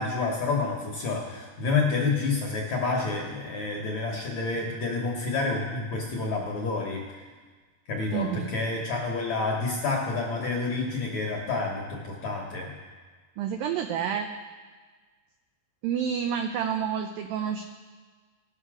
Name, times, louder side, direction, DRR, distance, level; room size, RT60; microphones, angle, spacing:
voice 1, 0.0-7.0 7.9-12.7, left 3 dB, 65° left, -1 dB, 1.8 m, -29 dB
voice 2, 8.1-8.5 13.4-14.3 15.8-17.6, right 8 dB, 90° right, 5 dB, 2.0 m, -29 dB
19.5 x 6.6 x 4.9 m, 1.4 s
omnidirectional pair, 4.8 m